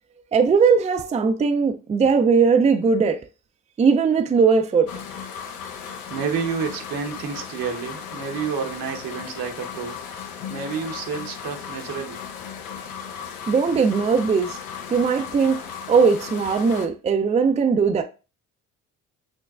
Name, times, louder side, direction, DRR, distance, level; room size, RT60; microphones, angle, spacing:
voice 1, 0.3-3.2 3.8-4.9 13.5-14.6 14.9-15.6 15.9-18.0, right 5 dB, 20° right, 0.4 m, -19 dB
sound 1, 4.9-16.9, left 7 dB, 70° left, 0.7 m, -36 dB
voice 2, 6.1-10.0 10.5-12.2, right 6 dB, 70° right, 0.9 m, -29 dB
6.2 x 2.2 x 2.3 m
supercardioid pair, 65°, 36 cm